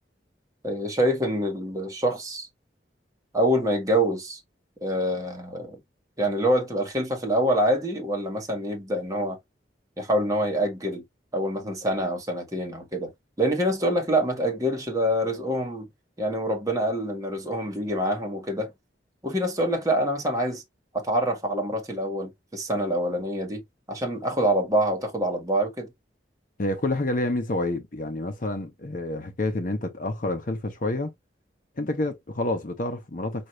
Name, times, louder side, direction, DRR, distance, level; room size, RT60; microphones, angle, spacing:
voice 1, 0.6-2.5 3.3-4.4 4.8-5.8 6.2-9.4 10.0-11.0 11.3-13.1 13.4-15.9 16.2-18.7 19.2-20.6 20.9-23.6 23.9-25.9, equal, 20° right, 1.4 m, -26 dB
voice 2, 26.6-31.1 31.8-33.5, left 2 dB, 50° left, 0.8 m, -28 dB
5.3 x 2.5 x 3.1 m
head